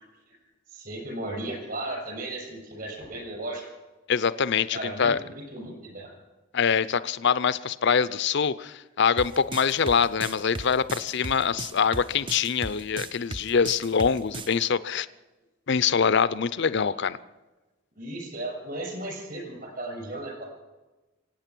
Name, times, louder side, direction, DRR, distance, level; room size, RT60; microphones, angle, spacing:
voice 1, 0.7-3.6 4.7-6.1 16.9-17.1 18.0-20.4, right 1 dB, 45° right, -1 dB, 7.0 m, -35 dB
voice 2, 4.1-5.2 6.5-15.1 15.7-17.2, left 6 dB, 55° left, 16 dB, 0.5 m, -24 dB
sound 1, 9.2-14.5, right 2 dB, 25° right, 0.6 m, -36 dB
24.0 x 8.9 x 6.1 m, 1.1 s
head